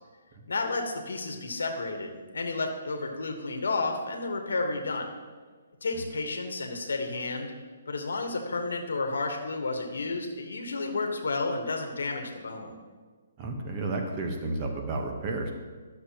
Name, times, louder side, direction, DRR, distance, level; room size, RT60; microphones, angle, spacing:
voice 1, 0.5-5.1 5.8-7.5 7.9-12.7, left 3 dB, 85° left, 3 dB, 1.2 m, -31 dB
voice 2, 13.4-15.5, right 2 dB, 30° right, 2 dB, 1.0 m, -32 dB
12.0 x 6.5 x 2.9 m, 1.5 s
hypercardioid pair, 155°, 0 cm